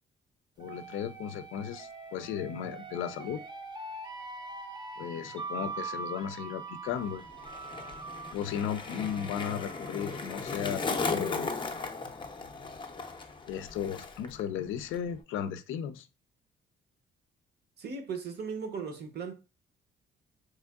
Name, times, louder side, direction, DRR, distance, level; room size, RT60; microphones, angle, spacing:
voice 1, 0.6-3.4 5.0-7.2 8.3-11.7 13.5-16.1, left 9 dB, 85° left, 0.4 m, -35 dB
sound 1, 0.6-10.3, right 3 dB, 20° right, 0.5 m, -43 dB
Skateboard, 6.9-14.4 14.7-15.2, left 3 dB, 25° left, 0.5 m, -37 dB
voice 2, 17.8-19.3, right 5 dB, 55° right, 0.8 m, -37 dB
3.5 x 3.1 x 2.2 m
cardioid pair, 90°, 20 cm